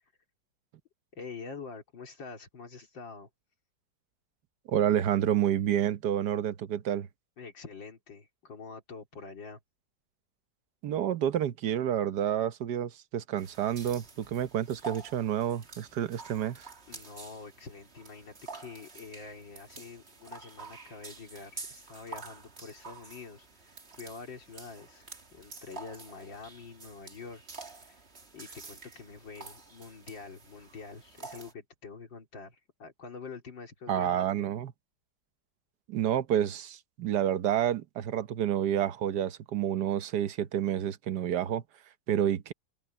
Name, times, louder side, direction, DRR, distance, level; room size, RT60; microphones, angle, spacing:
voice 1, 1.1-3.3 7.4-9.6 16.9-27.4 27.7-28.1 28.3-34.5, left 4 dB, 85° left, 4.0 m, -46 dB
voice 2, 4.6-7.1 10.8-16.7 33.9-34.7 35.9-42.5, right 10 dB, 65° right, 1.4 m, -29 dB
sound 1, 13.4-31.5, right 3 dB, 35° right, 2.3 m, -48 dB
omnidirectional pair, 2.0 m